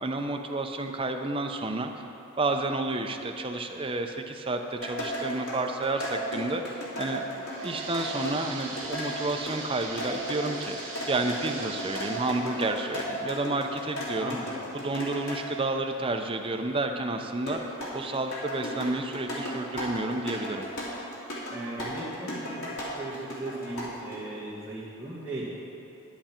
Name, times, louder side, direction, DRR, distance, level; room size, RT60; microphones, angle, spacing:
voice 1, 0.0-1.9 2.4-10.8 11.1-14.4 14.7-20.7, right 2 dB, 25° right, 4 dB, 0.5 m, -30 dB
sound 1, 4.7-15.4 17.5-24.2, equal, 80° left, 2.5 m, -35 dB
sound 2, 7.2-14.8 15.2-15.3 16.1-16.2 16.6-16.7, right 3 dB, 60° right, 1.9 m, -42 dB
voice 2, 14.2-14.5 21.5-22.6 23.0-25.5, right 2 dB, 5° right, -12 dB, 1.7 m, -37 dB
10.5 x 10.0 x 4.4 m, 2.9 s
head